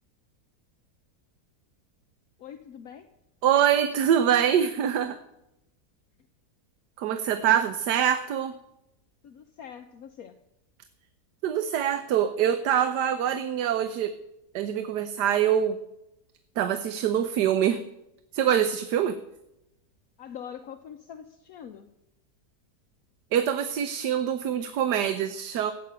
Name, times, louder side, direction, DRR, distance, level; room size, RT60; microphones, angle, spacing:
voice 1, 2.4-3.1 9.2-10.4 20.2-21.9, left 8 dB, 65° left, 7 dB, 1.2 m, -43 dB
voice 2, 3.4-5.2 7.0-8.6 11.4-14.2 14.5-15.8 16.6-17.8 18.3-19.2 23.3-25.7, right 9 dB, 90° right, 11 dB, 1.4 m, -24 dB
15.0 x 8.5 x 8.6 m, 0.88 s
omnidirectional pair, 1.7 m